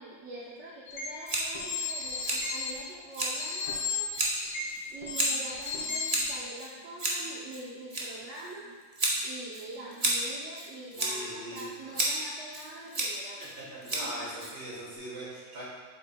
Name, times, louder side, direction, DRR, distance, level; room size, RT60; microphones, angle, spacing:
voice 1, 0.0-4.1 4.9-8.7 9.2-13.5 13.8-14.3, right 2 dB, 55° right, -4 dB, 1.0 m, -44 dB
sound 1, 0.9-1.0 1.5-2.6 3.3-4.7 5.0-6.4, left 5 dB, 70° left, 1.9 m, -34 dB
Scissors, 1.3-15.0, right 1 dB, 30° right, 0.9 m, -34 dB
voice 2, 10.9-11.9 13.6-15.6, right 1 dB, 75° right, -8 dB, 2.7 m, -41 dB
7.8 x 7.5 x 2.2 m, 1.4 s
omnidirectional pair, 1.8 m